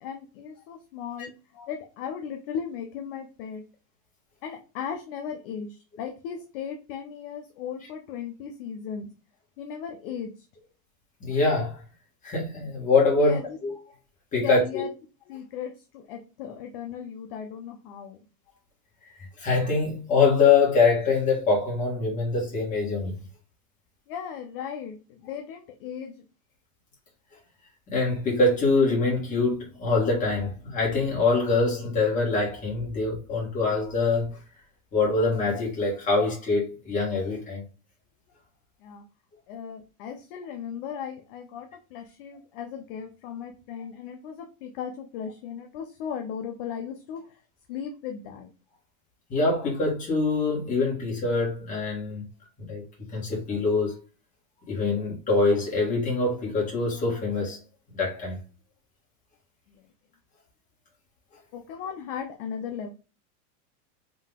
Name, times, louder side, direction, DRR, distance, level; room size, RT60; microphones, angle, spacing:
voice 1, 0.0-1.3 1.7-3.6 4.4-9.1 9.6-10.5 13.2-13.6 14.4-14.9 15.3-18.2 24.1-26.2 38.8-39.0 39.5-47.4 47.7-48.5 59.7-59.9 61.5-62.9, left 7 dB, 40° left, 0.5 m, -37 dB
voice 2, 11.2-11.8 12.2-13.4 13.6-13.7 14.3-14.9 19.4-23.2 27.9-34.4 34.9-37.6 49.3-52.2 52.6-52.8 53.1-54.0 54.7-57.6 57.9-58.4, left 3 dB, 15° left, 1.6 m, -24 dB
3.8 x 2.7 x 3.5 m
supercardioid pair, 160°, 45 cm